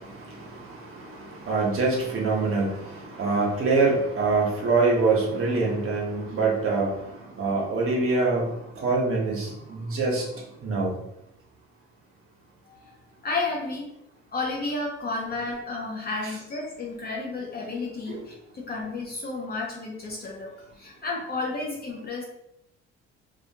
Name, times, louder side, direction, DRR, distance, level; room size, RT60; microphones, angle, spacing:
voice 1, 1.5-6.9 7.4-8.4 8.8-10.2 10.6-10.9 18.1-18.2, right 3 dB, 45° right, -3 dB, 0.9 m, -24 dB
voice 2, 13.2-13.9 14.3-22.2, left 3 dB, 30° left, -2 dB, 0.6 m, -32 dB
2.4 x 2.3 x 2.8 m, 0.82 s
hypercardioid pair, 70°, 31 cm